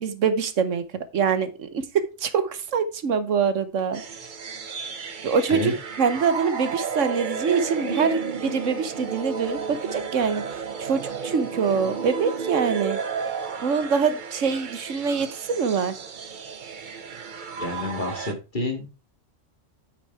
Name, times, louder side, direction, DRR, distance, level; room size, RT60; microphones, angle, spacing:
voice 1, 0.0-0.8 1.1-1.8 2.2-4.0 5.2-5.7 6.0-10.4 10.8-13.0 13.6-16.0, right 6 dB, 75° right, 12 dB, 1.3 m, -24 dB
sound 1, 3.9-18.3, right 5 dB, 45° right, 0.9 m, -32 dB
voice 2, 17.6-18.9, left 2 dB, 40° left, 3 dB, 2.4 m, -29 dB
8.4 x 6.4 x 4.5 m, 0.30 s
omnidirectional pair, 1.3 m